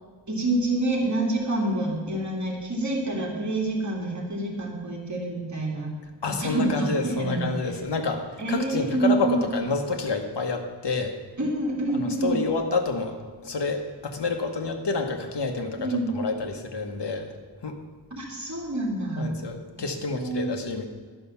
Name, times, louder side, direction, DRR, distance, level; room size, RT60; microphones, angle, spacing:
voice 1, 0.3-5.9 6.4-7.4 8.4-9.5 11.4-12.4 15.8-16.1 18.1-19.3 20.1-20.6, right 2 dB, 40° right, -2 dB, 2.5 m, -27 dB
voice 2, 6.2-11.1 11.9-17.3 17.6-17.8 19.2-20.9, left 4 dB, 75° left, 4 dB, 1.2 m, -28 dB
11.5 x 5.5 x 7.0 m, 1.4 s
wide cardioid pair, 100°, 42 cm